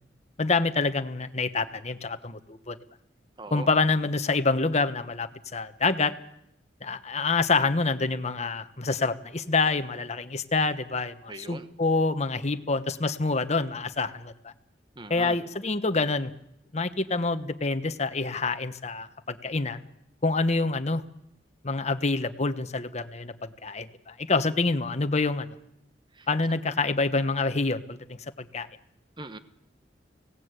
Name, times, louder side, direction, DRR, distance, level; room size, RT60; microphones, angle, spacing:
voice 1, 0.4-2.8 3.5-6.1 6.8-14.5 15.1-16.3 16.7-19.8 20.2-21.0 21.6-25.5 26.3-28.7, left 3 dB, 40° left, 9 dB, 1.2 m, -27 dB
voice 2, 3.4-3.7 11.3-11.7 15.0-15.4 26.2-26.3 29.2-29.4, right 2 dB, 25° right, 10 dB, 1.2 m, -40 dB
24.5 x 18.0 x 8.2 m, 0.80 s
head